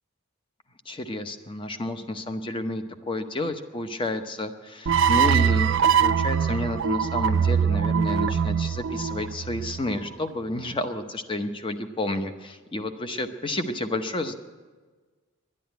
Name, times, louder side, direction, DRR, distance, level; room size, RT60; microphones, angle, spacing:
voice 1, 0.9-14.4, left 1 dB, 25° left, 8 dB, 0.8 m, -30 dB
sound 1, 4.9-10.1, right 7 dB, 60° right, 0.5 m, -23 dB
11.0 x 11.0 x 9.3 m, 1.4 s
head